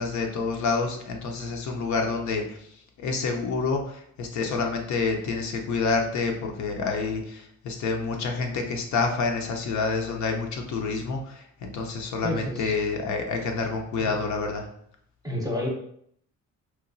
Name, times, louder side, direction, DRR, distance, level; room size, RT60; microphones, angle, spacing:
voice 1, 0.0-2.4 3.0-3.8 4.2-11.2 11.6-14.6, left 4 dB, 70° left, 2 dB, 0.6 m, -28 dB
voice 2, 12.2-12.8 14.0-14.2 15.2-15.7, left 1 dB, 10° right, -1 dB, 0.7 m, -30 dB
3.0 x 2.2 x 2.5 m, 0.67 s
cardioid pair, 90°, 30 cm